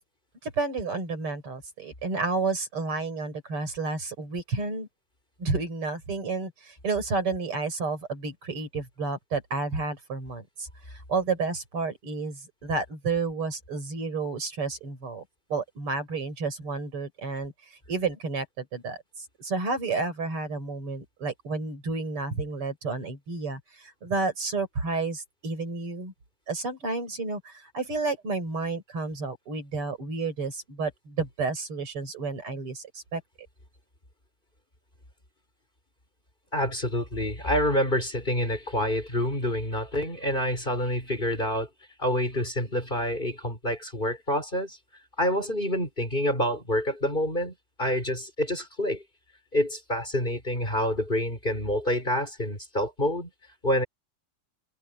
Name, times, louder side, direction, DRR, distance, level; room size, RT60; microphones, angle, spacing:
voice 1, 0.4-4.9 5.4-15.2 15.5-26.1 26.5-33.2, right 4 dB, 85° right, 6.0 m, -31 dB
voice 2, 36.5-41.7 42.0-44.8 45.2-49.0 49.5-53.3 53.6-53.8, equal, 20° left, 5.9 m, -27 dB
omnidirectional pair, 2.4 m